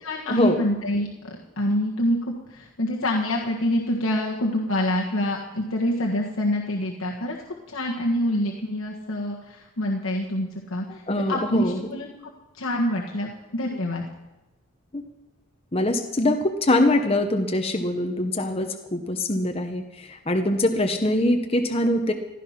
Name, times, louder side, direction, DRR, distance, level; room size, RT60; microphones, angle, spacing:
voice 1, 0.0-7.4 7.7-11.0 11.3-12.3 12.6-14.1, left 1 dB, 80° left, -2 dB, 1.6 m, -26 dB
voice 2, 10.9-11.9 14.9-15.1 15.7-22.1, left 1 dB, 30° left, 5 dB, 0.9 m, -23 dB
15.5 x 12.0 x 5.9 m, 1.0 s
head